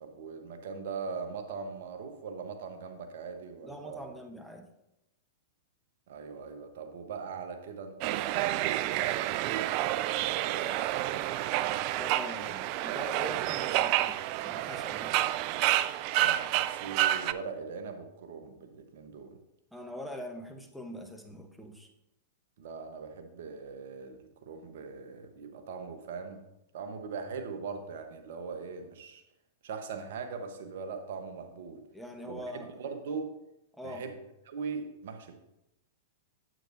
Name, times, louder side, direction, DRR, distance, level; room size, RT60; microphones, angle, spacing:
voice 1, 0.0-4.1 6.1-9.7 10.2-11.2 16.1-19.4 22.6-26.4 26.7-29.2 29.6-31.8 32.3-33.3 33.8-34.2 34.5-35.3, right 5 dB, 65° right, 6 dB, 1.1 m, -41 dB
voice 2, 3.6-4.7 12.0-14.2 14.4-15.2 19.7-21.9 31.9-32.8 33.7-34.0, equal, ahead, 3 dB, 1.1 m, -43 dB
sound 1, 8.0-17.3, right 14 dB, 50° right, 0.3 m, -29 dB
9.1 x 8.2 x 2.7 m, 0.88 s
hypercardioid pair, 105°, 0 cm